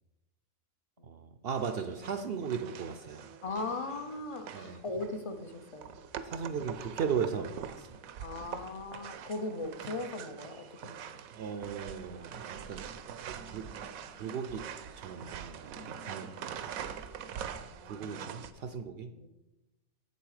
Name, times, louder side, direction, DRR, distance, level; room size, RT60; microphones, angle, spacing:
voice 1, 1.0-3.3 4.5-4.8 6.2-8.0 11.3-12.8 13.2-13.7 14.1-14.7 15.0-15.7 16.0-16.8 17.9-19.1, right 6 dB, 65° right, 8 dB, 0.6 m, -37 dB
sound 1, 1.6-18.5, right 8 dB, 85° right, 1.0 m, -44 dB
voice 2, 3.4-6.0 8.2-11.0 15.2-16.4 19.1-19.3, left 2 dB, 45° left, 7 dB, 0.4 m, -39 dB
7.7 x 7.0 x 4.8 m, 1.0 s
omnidirectional pair, 1.4 m